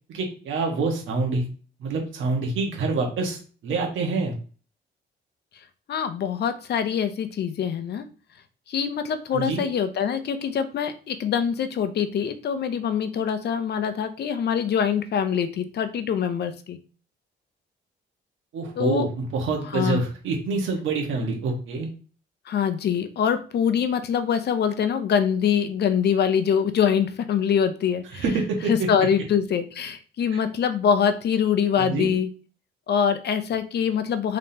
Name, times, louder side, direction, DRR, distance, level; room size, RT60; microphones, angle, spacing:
voice 1, 0.1-1.5 1.8-4.3 9.3-9.6 18.5-21.9 28.1-28.9 30.3-30.4 31.8-32.1, right 3 dB, 75° right, 1 dB, 1.5 m, -26 dB
voice 2, 5.9-8.1 8.7-16.8 18.8-19.1 19.7-20.0 22.5-28.2 28.7-32.3 32.9-34.4, left 7 dB, 55° left, 10 dB, 0.6 m, -24 dB
3.8 x 3.6 x 2.9 m, 0.38 s
cardioid pair, 90°, 20 cm